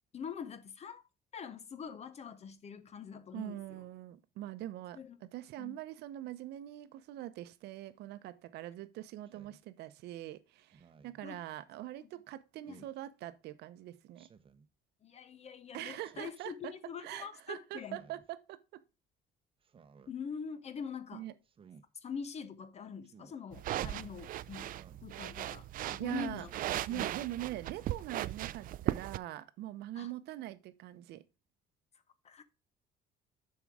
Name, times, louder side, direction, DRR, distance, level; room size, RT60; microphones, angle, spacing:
voice 1, 0.1-1.0 1.3-3.8 5.0-5.2 5.6-5.8 11.2-11.4 12.0-12.1 12.6-12.9 15.0-18.0 20.1-21.3 22.0-26.5 26.9-27.1 29.9-30.1 32.2-32.4, left 6 dB, 40° left, 0.7 m, -44 dB
voice 2, 3.3-14.3 15.7-16.7 17.0-18.8 21.1-21.3 26.0-26.5 26.9-31.2, right 14 dB, 80° right, 0.8 m, -43 dB
Speech synthesizer, 9.3-9.6 10.7-11.2 12.6-13.0 14.1-14.7 16.0-16.5 17.8-18.3 19.6-20.1 21.4-21.8 23.0-23.4 24.7-25.1 26.3-26.8, right 6 dB, 30° right, 0.8 m, -59 dB
sound 1, 23.5-29.2, right 13 dB, 55° right, 0.4 m, -38 dB
7.2 x 4.8 x 4.8 m
cardioid pair, 110°, 17 cm